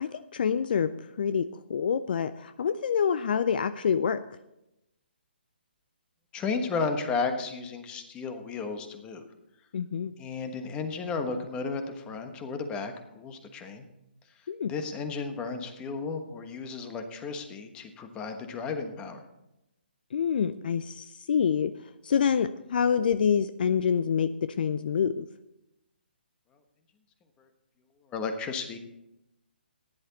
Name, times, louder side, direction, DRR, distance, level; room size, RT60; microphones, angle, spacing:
voice 1, 0.0-4.2 9.7-10.1 14.5-14.7 20.1-21.7 22.0-25.3, left 7 dB, 55° left, 13 dB, 0.5 m, -27 dB
voice 2, 6.3-9.2 10.2-13.9 14.7-19.3 28.1-28.8, left 4 dB, 15° left, 7 dB, 1.3 m, -33 dB
14.5 x 10.5 x 4.2 m, 0.89 s
figure-of-eight pair, 140°, 6 cm